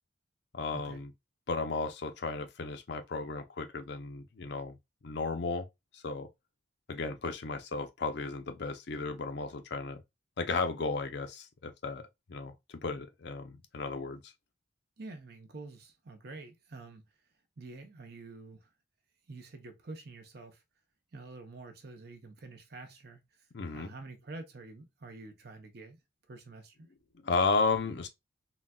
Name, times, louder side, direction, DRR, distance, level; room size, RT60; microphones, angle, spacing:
voice 1, 0.5-1.1 1.5-4.8 5.0-5.7 5.9-6.3 6.9-10.0 10.4-12.0 12.3-12.5 12.8-14.3 23.5-23.9 27.1-28.1, left 4 dB, 55° left, 0.6 m, -34 dB
voice 2, 15.0-17.0 17.6-18.7 19.3-20.6 21.1-23.2 23.7-26.0 26.3-26.9, right 3 dB, 55° right, 0.7 m, -47 dB
3.8 x 2.2 x 2.2 m
head